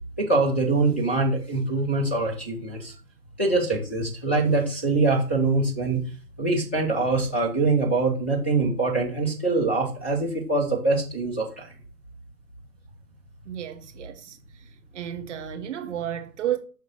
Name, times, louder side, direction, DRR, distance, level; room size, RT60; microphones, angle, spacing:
voice 1, 0.2-2.9 3.4-6.0 6.4-11.7, right 3 dB, 10° left, 0.4 m, -24 dB
voice 2, 13.4-14.6 14.9-16.6, right 10 dB, 45° right, 1.5 m, -32 dB
6.6 x 3.6 x 5.8 m
figure-of-eight pair, 130°, 47 cm